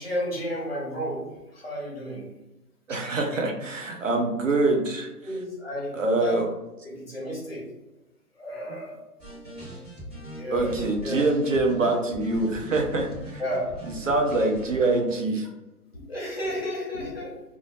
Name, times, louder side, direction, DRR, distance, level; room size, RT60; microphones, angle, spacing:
voice 1, 0.0-2.3 4.1-4.2 5.2-6.4 6.8-7.7 8.4-9.0 10.4-11.4 11.7-11.8 13.4-13.8 15.9-17.4, equal, 40° left, -4 dB, 0.7 m, -32 dB
voice 2, 2.9-5.1 5.9-6.5 10.5-13.4 14.1-15.5, right 2 dB, 55° right, 3 dB, 0.5 m, -24 dB
sound 1, 9.2-15.1, right 1 dB, 15° right, 0.8 m, -40 dB
2.1 x 2.1 x 2.9 m, 1.0 s
figure-of-eight pair, 165°, 47 cm